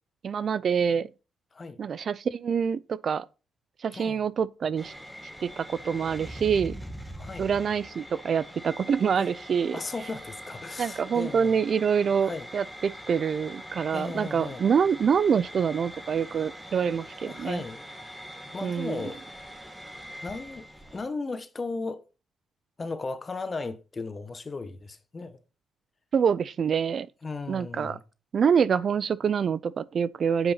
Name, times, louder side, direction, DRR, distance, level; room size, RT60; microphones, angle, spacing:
voice 1, 0.2-1.1 1.8-3.2 3.8-4.9 5.4-6.8 7.4-9.8 10.8-17.6 18.6-19.0 26.1-27.1 27.5-28.0 28.3-30.5, right 7 dB, 50° right, 0.5 m, -26 dB
voice 2, 3.9-4.2 7.2-7.5 9.2-9.3 9.7-11.6 12.2-12.5 13.9-14.6 17.2-17.8 18.5-19.2 20.2-20.7 20.9-22.0 22.8-25.4 27.2-28.0, left 3 dB, 30° left, 1.4 m, -36 dB
sound 1, 4.8-21.0, equal, ahead, 1.8 m, -43 dB
8.0 x 5.5 x 6.4 m
cardioid pair, 90°, 0 cm